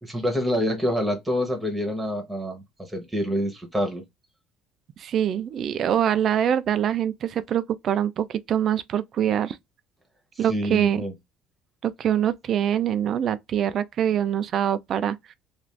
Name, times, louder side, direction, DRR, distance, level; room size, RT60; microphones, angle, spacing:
voice 1, 0.0-4.0 10.4-11.1, equal, 5° right, 0.9 m, -27 dB
voice 2, 5.0-9.6 10.4-11.0 11.8-15.2, right 9 dB, 40° right, 0.3 m, -24 dB
2.5 x 2.4 x 3.1 m
cardioid pair, 160°, 0 cm